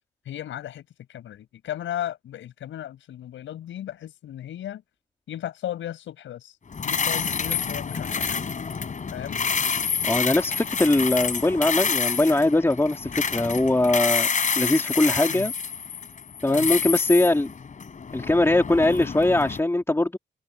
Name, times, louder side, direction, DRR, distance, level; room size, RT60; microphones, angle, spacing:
voice 1, 0.2-4.8 5.3-6.6 6.8-8.5 9.1-9.4 15.3-15.5 16.5-16.7, left 11 dB, 75° left, 6.2 m, -35 dB
sound 1, 6.7-19.6, left 6 dB, 40° left, 5.6 m, -28 dB
voice 2, 10.0-14.3 14.6-15.5 16.4-17.5 18.1-20.2, left 2 dB, 10° left, 3.3 m, -21 dB
open air
cardioid pair, 90°, 20 cm